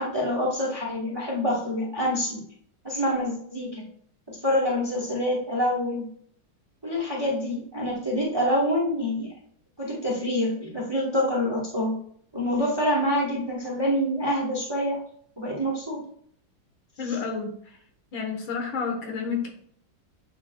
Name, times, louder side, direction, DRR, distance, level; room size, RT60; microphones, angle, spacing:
voice 1, 0.0-2.4 2.8-3.8 4.3-6.1 6.8-9.3 9.8-12.0 12.3-15.0 15.4-16.0 17.0-17.1, left 1 dB, 15° right, -3 dB, 1.0 m, -26 dB
voice 2, 17.0-17.5 18.1-19.5, left 5 dB, 85° left, 2 dB, 2.0 m, -30 dB
8.4 x 5.1 x 2.3 m, 0.62 s
omnidirectional pair, 2.1 m